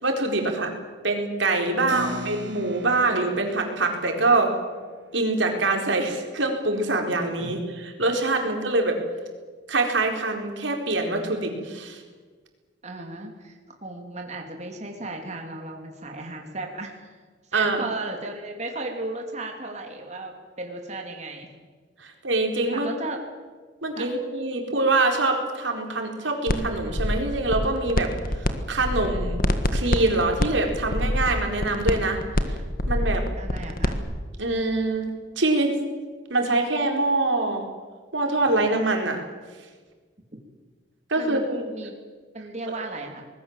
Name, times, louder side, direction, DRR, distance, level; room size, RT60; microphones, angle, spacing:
voice 1, 0.0-0.7 1.0-4.5 5.1-9.0 9.7-12.0 17.5-17.8 22.0-22.9 23.8-28.1 28.7-29.4 29.7-32.2 32.5-32.6 32.9-33.2 34.4-35.1 35.4-35.7 36.3-37.6 38.1-39.2 41.1-41.7 42.7-42.8, right 2 dB, 85° right, 3 dB, 4.5 m, -24 dB
voice 2, 1.7-2.2 7.4-7.6 12.8-17.2 17.5-21.5 22.7-23.2 24.0-24.1 33.3-34.0 41.2-41.9 42.3-43.3, right 2 dB, 40° right, 2 dB, 3.1 m, -35 dB
Keyboard (musical), 1.9-7.9, equal, 65° right, 2.9 m, -40 dB
sound 1, 26.5-26.6 26.9-28.5 28.8-34.0, left 1 dB, 50° left, 1.7 m, -25 dB
25.0 x 20.5 x 7.5 m, 1.4 s
head